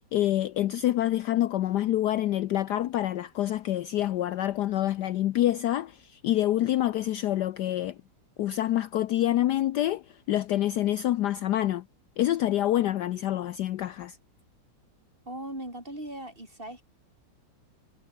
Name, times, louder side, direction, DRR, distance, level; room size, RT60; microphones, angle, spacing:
voice 1, 0.1-8.0 8.4-11.8 12.2-14.2, left 13 dB, 70° left, 1.1 m, -27 dB
voice 2, 15.3-16.8, right 1 dB, 25° right, 7.6 m, -39 dB
omnidirectional pair, 2.1 m